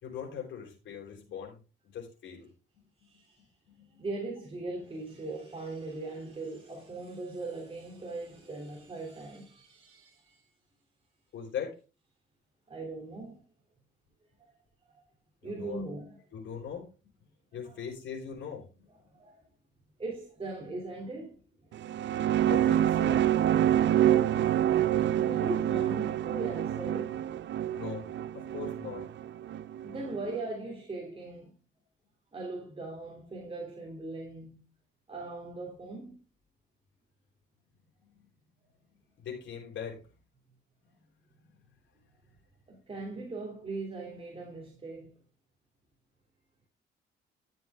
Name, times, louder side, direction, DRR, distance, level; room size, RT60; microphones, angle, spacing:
voice 1, 0.0-1.6 1.8-2.5 3.7-4.0 11.3-11.8 15.4-15.8 16.3-16.9 17.5-18.9 22.5-23.3 27.7-28.1 28.3-29.1 38.0-38.1 39.2-40.0, left 7 dB, 65° left, 4.3 m, -40 dB
voice 2, 3.0-3.5 4.0-10.4 12.7-13.4 14.5-14.6 14.9-15.0 15.4-16.2 17.6-17.8 19.1-19.4 20.0-22.5 25.0-27.2 29.8-31.5 32.3-34.6 35.1-36.2 42.7-45.1, right 2 dB, 30° right, 3.1 m, -40 dB
sound 1, 21.7-30.4, right 11 dB, 65° right, 0.6 m, -27 dB
12.0 x 7.6 x 3.6 m
cardioid pair, 90°, 20 cm